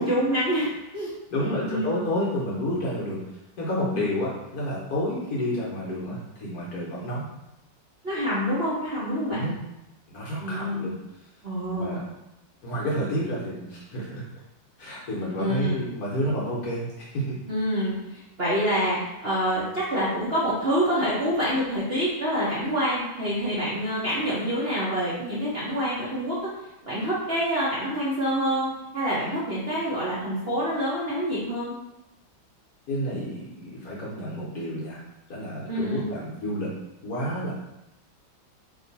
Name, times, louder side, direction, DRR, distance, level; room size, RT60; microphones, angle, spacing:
voice 1, 0.0-1.1 1.4-1.9 8.0-9.5 10.4-10.9 11.4-12.0 15.4-15.9 17.5-26.4 26.8-31.7 35.7-36.1, equal, 45° right, -10 dB, 0.9 m, -27 dB
voice 2, 1.3-3.2 3.6-7.3 9.3-9.5 10.1-10.9 11.7-12.0 12.6-14.2 14.8-17.4 32.9-35.0 35.3-36.7 37.0-37.5, equal, 55° left, -5 dB, 1.2 m, -30 dB
3.7 x 2.8 x 4.0 m, 0.91 s
omnidirectional pair, 2.2 m